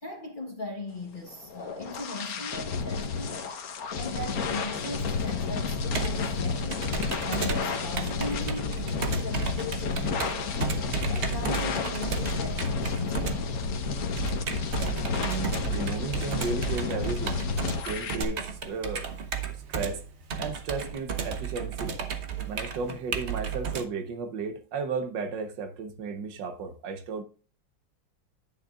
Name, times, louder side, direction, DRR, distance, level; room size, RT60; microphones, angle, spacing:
voice 1, 0.0-6.9 7.2-10.6 11.1-13.6 19.5-19.6, left 2 dB, 35° left, 1.0 m, -39 dB
sound 1, 1.3-18.2, left 4 dB, 55° left, 1.3 m, -31 dB
Computer keyboard, 5.0-23.8, right 6 dB, 50° right, 0.9 m, -34 dB
voice 2, 15.2-17.4 17.7-19.1 19.5-20.0 20.4-22.0 22.5-27.2, right 5 dB, 70° right, 1.4 m, -34 dB
10.5 x 8.9 x 2.4 m
omnidirectional pair, 2.1 m